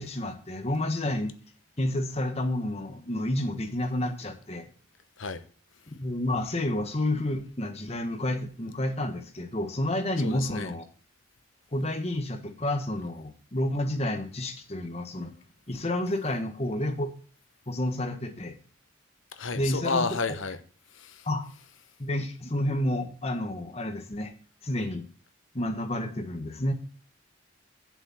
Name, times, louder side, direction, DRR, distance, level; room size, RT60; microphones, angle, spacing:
voice 1, 0.0-1.4 1.8-4.7 6.0-10.8 11.7-15.3 15.7-17.1 17.7-18.6 19.5-20.1 21.2-21.4 22.0-24.3 24.6-25.0 25.5-26.7, left 1 dB, 30° left, 1.4 m, -30 dB
voice 2, 10.2-10.7 19.3-20.6 20.9-21.3, left 4 dB, 85° left, 1.1 m, -31 dB
7.8 x 7.0 x 7.6 m
head